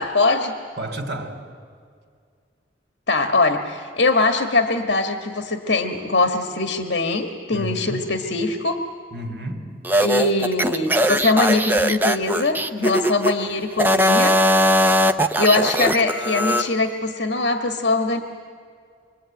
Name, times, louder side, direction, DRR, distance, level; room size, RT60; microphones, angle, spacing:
voice 1, 0.0-0.6 3.1-8.9 10.0-14.4 15.3-18.2, left 3 dB, 70° left, 6 dB, 1.6 m, -22 dB
voice 2, 0.8-1.5 7.5-8.1 9.1-9.7, right 1 dB, 70° right, 5 dB, 3.2 m, -31 dB
sound 1, 9.8-13.3 13.7-16.7, equal, 10° right, 0.7 m, -19 dB
25.0 x 24.0 x 9.1 m, 2.1 s
head